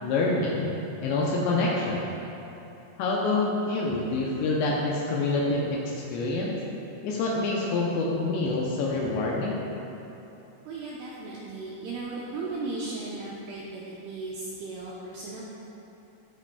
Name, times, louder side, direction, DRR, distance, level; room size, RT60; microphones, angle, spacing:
voice 1, 0.0-0.7 1.0-2.0 3.0-6.6 7.0-9.6, left 2 dB, 80° left, -3 dB, 2.7 m, -26 dB
voice 2, 10.7-15.4, right 3 dB, 85° right, -6 dB, 2.3 m, -36 dB
14.5 x 5.0 x 2.2 m, 3.0 s
omnidirectional pair, 5.4 m